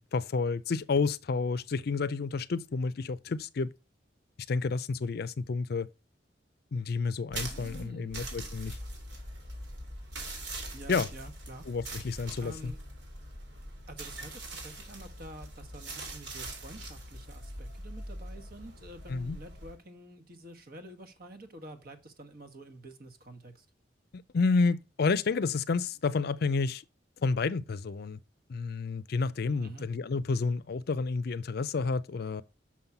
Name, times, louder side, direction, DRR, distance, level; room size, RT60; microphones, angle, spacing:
voice 1, 0.0-3.7 4.5-5.9 6.7-8.8 10.9-11.1 11.7-12.7 19.1-19.4 24.1-26.8 27.2-28.2 28.5-32.4, left 4 dB, 60° left, 0.4 m, -30 dB
sound 1, 7.3-19.7, right 1 dB, 80° right, 2.8 m, -42 dB
voice 2, 7.5-8.2 10.7-11.7 12.4-12.8 13.9-23.6 29.6-29.9, right 1 dB, 55° right, 1.3 m, -48 dB
6.1 x 5.6 x 5.8 m
head